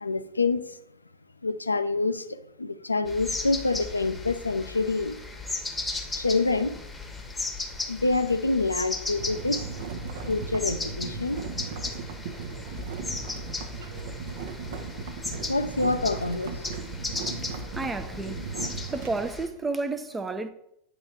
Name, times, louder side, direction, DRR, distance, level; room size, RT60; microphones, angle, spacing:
voice 1, 0.0-0.6 1.4-5.2 6.2-6.7 7.9-9.7 10.3-11.4 15.5-16.6, left 3 dB, 80° left, 0.4 m, -26 dB
sound 1, 3.1-19.5, left 3 dB, 10° left, 1.0 m, -36 dB
sound 2, 9.2-19.3, right 5 dB, 55° right, 0.6 m, -37 dB
voice 2, 17.7-18.5 18.9-20.5, right 3 dB, 15° right, 0.5 m, -31 dB
8.9 x 3.1 x 4.7 m
figure-of-eight pair, 90°, 0 cm